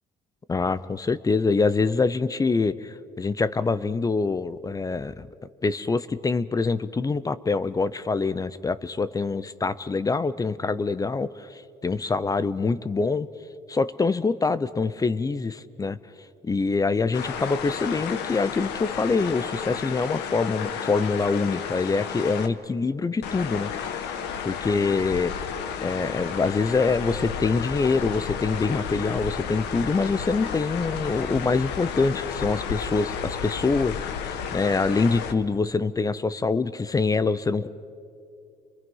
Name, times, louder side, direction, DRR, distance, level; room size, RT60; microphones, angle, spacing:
voice 1, 0.5-5.3 5.6-13.3 13.7-16.0 16.4-24.0 24.4-25.3 25.8-34.1 34.5-37.7, left 4 dB, 20° left, 15 dB, 0.6 m, -25 dB
sound 1, 17.1-22.5 23.2-35.3, left 7 dB, 85° left, 1.3 m, -32 dB
29.5 x 22.5 x 5.5 m, 2.5 s
cardioid pair, 110°, 17 cm